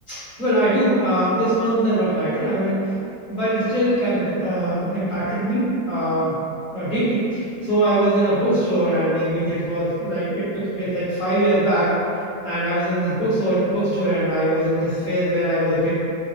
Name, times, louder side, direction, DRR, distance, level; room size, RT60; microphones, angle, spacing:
voice 1, 0.4-2.8 3.3-6.3 6.7-11.9 12.4-15.9, right 1 dB, 35° left, -14 dB, 0.9 m, -21 dB
2.9 x 2.2 x 2.6 m, 2.6 s
omnidirectional pair, 1.8 m